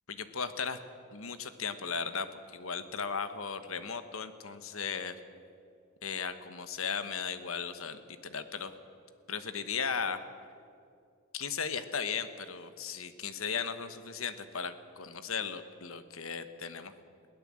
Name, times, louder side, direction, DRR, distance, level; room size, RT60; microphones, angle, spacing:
voice 1, 0.1-0.8 1.1-2.3 2.5-5.1 6.0-8.7 9.3-10.3 11.3-16.9, left 6 dB, 70° left, 11 dB, 1.2 m, -36 dB
22.0 x 16.5 x 7.6 m, 2.4 s
head